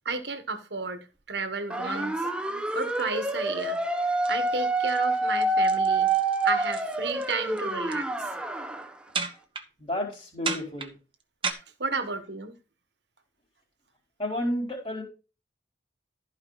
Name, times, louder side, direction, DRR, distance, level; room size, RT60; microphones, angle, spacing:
voice 1, 0.0-2.3 2.7-3.8 4.3-6.1 6.4-8.3 11.5-12.6, right 4 dB, 65° right, 1.4 m, -33 dB
sound 1, 1.1-1.2 1.7-3.3 3.7-4.0 4.2-4.5 4.8-5.0 5.3-7.3 7.6-8.0 9.1-9.6 10.4-11.5, right 5 dB, 30° right, 1.2 m, -34 dB
sound 2, 1.7-8.9, right 2 dB, 5° right, 0.9 m, -27 dB
voice 2, 9.8-10.9 14.2-15.0, left 1 dB, 30° left, 4.4 m, -31 dB
14.5 x 5.2 x 4.0 m
head